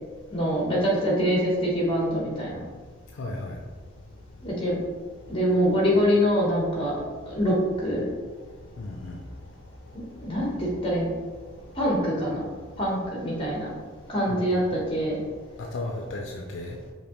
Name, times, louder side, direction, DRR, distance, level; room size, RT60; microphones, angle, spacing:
voice 1, 0.3-2.6 4.4-4.8 5.3-7.0 7.3-8.1 9.9-11.1 11.7-12.4 12.8-13.7 14.1-15.2, equal, 25° left, -3 dB, 1.2 m, -24 dB
voice 2, 3.1-3.6 8.8-9.2 14.3-14.7 15.6-16.8, left 2 dB, 70° left, 1 dB, 0.5 m, -35 dB
5.1 x 2.8 x 3.0 m, 1.4 s
head